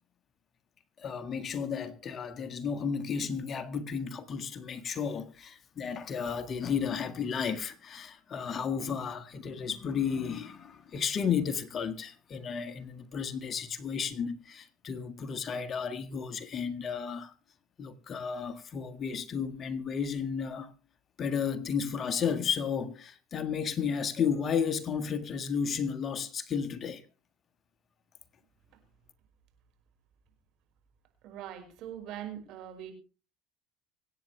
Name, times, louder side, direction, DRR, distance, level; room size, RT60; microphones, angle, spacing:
voice 1, 1.0-17.3 17.8-20.7 21.2-27.0, left 6 dB, 40° left, 1.7 m, -33 dB
voice 2, 31.2-32.9, right 11 dB, 60° right, 5.3 m, -42 dB
25.0 x 9.2 x 3.3 m
hypercardioid pair, 80°, 0 cm